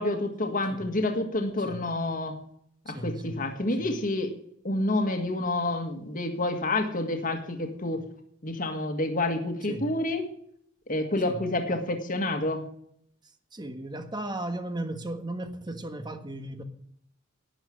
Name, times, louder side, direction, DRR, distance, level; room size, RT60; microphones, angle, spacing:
voice 1, 0.0-2.4 2.9-4.3 4.6-8.0 8.4-10.3 10.9-12.6, left 2 dB, 40° left, 1.8 m, -28 dB
voice 2, 2.9-3.4 3.8-3.9 9.7-9.9 11.2-11.4 11.7-11.9 13.5-16.6, right 1 dB, 20° right, 1.4 m, -36 dB
12.0 x 10.0 x 7.7 m
head